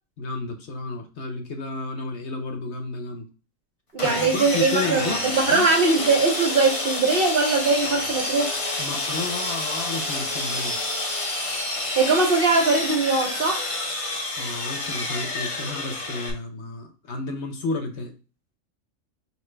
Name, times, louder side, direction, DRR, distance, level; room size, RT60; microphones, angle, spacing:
voice 1, 0.2-3.3 4.0-5.7 7.8-7.9 8.5-10.8 14.4-18.1, left 3 dB, 60° left, 1.0 m, -32 dB
voice 2, 3.9-8.5 12.0-13.7, right 3 dB, 50° right, 0.8 m, -21 dB
Sawing, 4.0-16.3, left 2 dB, 30° left, 0.7 m, -29 dB
5.0 x 2.9 x 3.3 m
omnidirectional pair, 1.4 m